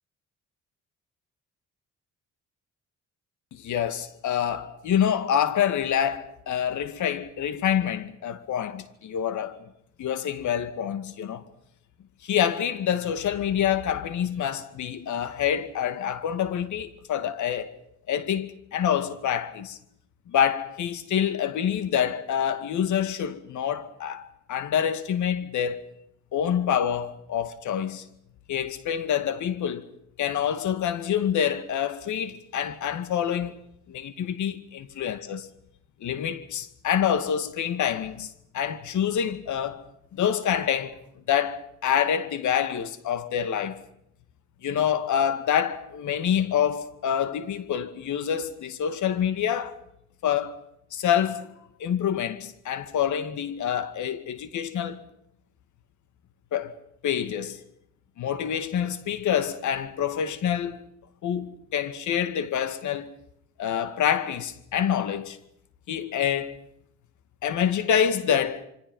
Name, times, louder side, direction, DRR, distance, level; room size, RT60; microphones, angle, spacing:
voice 1, 3.5-9.6 10.0-11.4 12.2-17.7 18.1-19.8 20.3-25.8 26.3-28.1 28.5-29.9 30.2-33.5 33.9-35.5 36.0-39.8 40.1-40.9 41.3-43.8 44.6-49.8 50.2-50.6 50.9-51.5 51.8-55.0 56.5-56.7 57.0-57.6 58.2-60.8 61.2-63.1 63.6-65.4 65.9-66.6 67.4-68.6, left 9 dB, 75° left, 2.3 m, -27 dB
27.0 x 25.0 x 5.5 m
cardioid pair, 90°, 30 cm